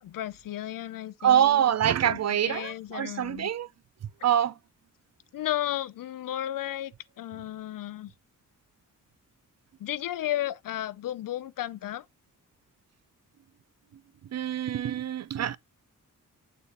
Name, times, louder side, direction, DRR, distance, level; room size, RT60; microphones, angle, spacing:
voice 1, 0.0-1.8 2.0-3.5 5.3-8.1 9.8-12.1, left 13 dB, 85° left, 0.5 m, -34 dB
voice 2, 1.2-3.7 4.2-4.5 14.3-15.6, right 10 dB, 55° right, 0.5 m, -25 dB
8.1 x 4.3 x 3.3 m
wide cardioid pair, 115°, 33 cm